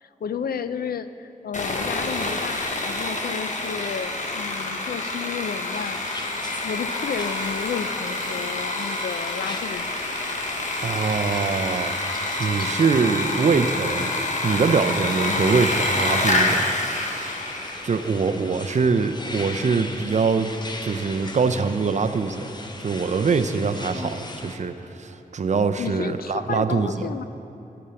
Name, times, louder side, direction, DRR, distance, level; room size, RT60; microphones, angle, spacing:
voice 1, 0.0-6.0 6.6-9.9 15.2-15.6 25.8-27.2, left 7 dB, 80° left, 12 dB, 0.4 m, -32 dB
Sawing, 1.5-18.0, left 2 dB, 50° left, 1.1 m, -27 dB
sound 1, 5.7-24.6, left 2 dB, 30° left, 0.8 m, -39 dB
voice 2, 10.8-12.0 12.4-14.1 14.4-16.7 17.8-20.5 20.8-22.4 22.8-24.7 25.0-27.1, right 5 dB, 50° right, 9 dB, 0.5 m, -23 dB
11.5 x 6.9 x 7.0 m, 2.9 s
wide cardioid pair, 110°, 15 cm